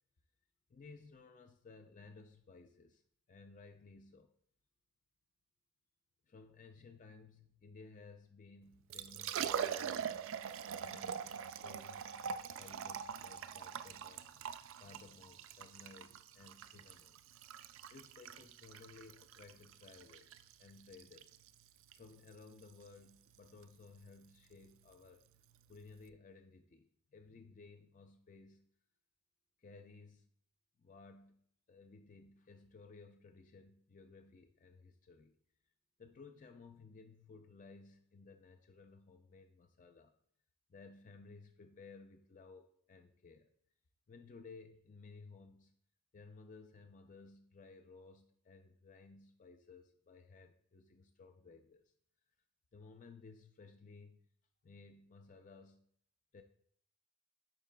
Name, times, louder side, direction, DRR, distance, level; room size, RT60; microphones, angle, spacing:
voice 1, 0.7-3.0 3.3-4.3 6.3-10.2 10.8-11.3 11.6-17.2 17.9-21.4 21.9-25.3 25.7-28.7 29.6-30.3 30.8-31.4 31.7-35.4 36.0-40.1 40.7-43.5 44.1-45.7 46.1-51.9 52.7-54.3 54.6-55.8 56.3-56.4, left 4 dB, 35° left, 6 dB, 0.4 m, -57 dB
Liquid, 8.7-26.1, right 7 dB, 60° right, 0.3 m, -44 dB
10.5 x 4.5 x 2.2 m, 0.66 s
head